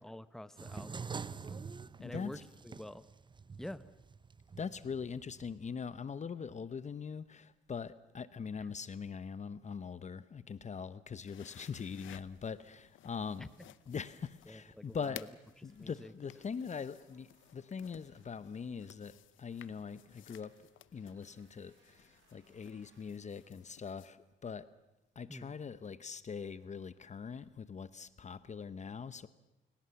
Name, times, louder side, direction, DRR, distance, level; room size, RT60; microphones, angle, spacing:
voice 1, 0.0-1.7 2.0-2.4 2.6-3.1 3.6-3.8 13.4-13.5 14.5-15.3 15.8-16.1 25.3-25.5, left 1 dB, ahead, 1.0 m, -48 dB
sound 1, 0.6-5.5, right 5 dB, 25° right, 0.7 m, -46 dB
voice 2, 2.0-2.4 4.6-13.5 13.9-15.2 15.6-20.6 20.9-24.7 25.2-29.3, left 6 dB, 35° left, 0.8 m, -42 dB
sound 2, 11.2-24.1, left 13 dB, 75° left, 0.8 m, -57 dB
sound 3, 12.3-13.9 14.5-16.1 16.6-18.4 19.3-23.8 24.2-24.5 25.2-25.7, right 5 dB, 70° right, 5.4 m, -74 dB
29.0 x 17.5 x 7.1 m
cardioid pair, 90°, 20 cm